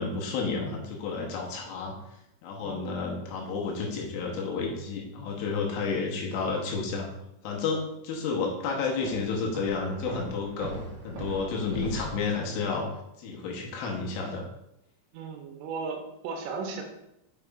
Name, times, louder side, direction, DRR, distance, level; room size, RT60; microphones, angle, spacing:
voice 1, 0.0-2.0 2.4-7.1 7.4-12.9 13.2-14.5, left 4 dB, 80° left, -1 dB, 3.2 m, -31 dB
voice 2, 2.6-3.0 15.1-16.8, right 4 dB, 85° right, 2 dB, 3.3 m, -36 dB
Walk footsteps, 9.0-12.3, right 2 dB, 60° right, 2.0 m, -39 dB
7.0 x 6.6 x 2.5 m, 0.84 s
omnidirectional pair, 5.9 m